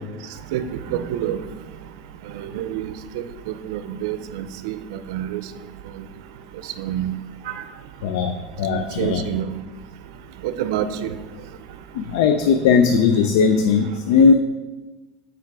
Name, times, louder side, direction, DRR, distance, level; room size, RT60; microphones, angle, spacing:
voice 1, 0.9-1.4 2.3-5.4 6.8-7.1 7.5-7.6 8.7-9.5 10.4-11.1, right 10 dB, 80° right, 11 dB, 0.5 m, -27 dB
voice 2, 8.0-9.2 11.9-14.3, left 5 dB, 80° left, 7 dB, 0.4 m, -18 dB
6.7 x 4.5 x 4.7 m, 1.2 s
supercardioid pair, 145°, 2 cm